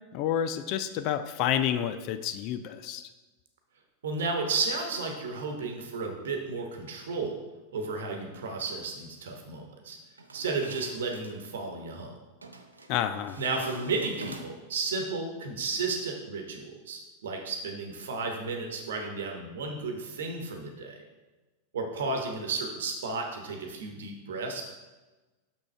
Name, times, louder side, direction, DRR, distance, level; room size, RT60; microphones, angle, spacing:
voice 1, 0.1-3.1 12.9-13.4, left 10 dB, 40° left, 10 dB, 0.3 m, -29 dB
voice 2, 4.0-7.4 7.7-10.0 10.3-12.1 13.4-21.0 21.7-24.6, right 3 dB, 60° right, 3 dB, 1.0 m, -33 dB
sound 1, 10.2-11.4 12.4-12.9 13.3-14.8, right 2 dB, 80° right, 0.5 m, -45 dB
6.3 x 6.0 x 3.3 m, 1.2 s
figure-of-eight pair, 90°, 0 cm